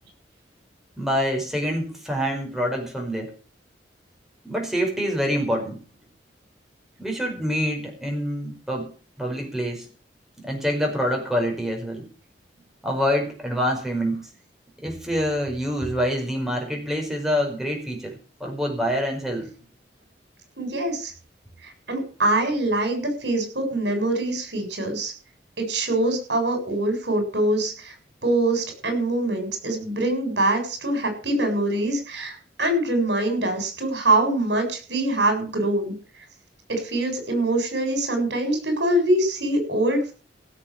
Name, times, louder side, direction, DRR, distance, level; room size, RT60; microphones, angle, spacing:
voice 1, 1.0-3.3 4.4-5.8 7.0-8.9 9.2-9.9 10.4-12.1 12.8-14.2 14.8-19.5, equal, ahead, 1 dB, 5.3 m, -26 dB
voice 2, 20.6-21.1 21.9-25.1 25.6-27.9 28.2-35.9 36.7-40.1, right 1 dB, 70° right, 6 dB, 7.3 m, -24 dB
17.0 x 7.7 x 7.3 m, 0.38 s
head